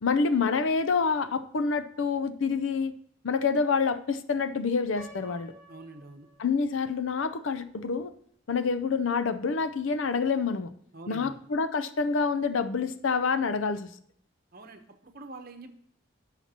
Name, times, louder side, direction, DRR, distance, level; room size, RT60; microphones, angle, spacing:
voice 1, 0.0-2.9 3.2-5.5 6.4-8.1 8.5-10.7 11.1-13.9, left 5 dB, 75° left, 12 dB, 0.6 m, -27 dB
Piano, 5.0-6.9, equal, ahead, 3.4 m, -51 dB
voice 2, 5.7-6.3 10.9-11.4 14.5-15.7, right 2 dB, 50° right, 6 dB, 0.9 m, -45 dB
16.0 x 5.8 x 2.9 m, 0.67 s
head